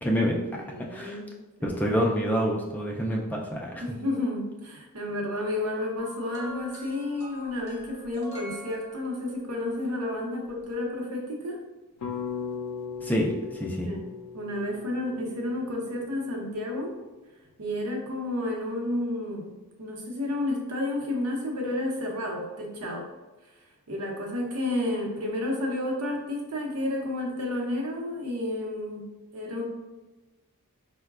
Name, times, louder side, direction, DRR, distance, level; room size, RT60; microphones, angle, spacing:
voice 1, 0.0-0.4 0.9-1.2 1.6-4.0 13.0-13.9, equal, 5° left, -1 dB, 0.3 m, -27 dB
voice 2, 0.6-1.3 1.6-1.9 3.8-11.6 13.9-16.9 17.6-23.1 23.9-29.6, left 1 dB, 80° right, 0 dB, 0.8 m, -31 dB
sound 1, 6.0-9.5 10.6-10.7, left 1 dB, 30° left, 0.8 m, -44 dB
sound 2, 12.0-16.3, left 6 dB, 85° left, 0.4 m, -38 dB
4.6 x 2.1 x 2.3 m, 1.1 s
head